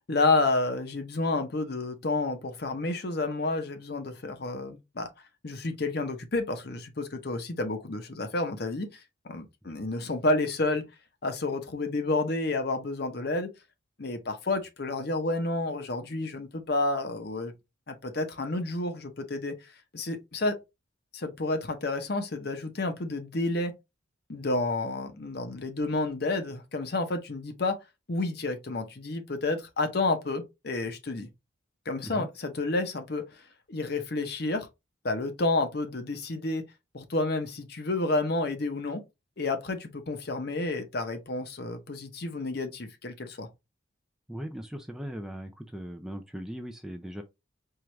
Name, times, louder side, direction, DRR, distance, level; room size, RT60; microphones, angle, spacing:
voice 1, 0.1-5.1 5.4-9.0 9.3-10.8 11.2-13.5 14.0-17.5 17.9-19.5 19.9-20.6 21.1-23.7 24.3-27.8 28.1-31.3 31.9-33.2 33.7-34.7 35.0-36.6 36.9-39.0 39.4-43.5, left 2 dB, 50° left, 0.8 m, -30 dB
voice 2, 44.3-47.2, equal, ahead, 0.3 m, -39 dB
4.5 x 2.4 x 3.1 m
head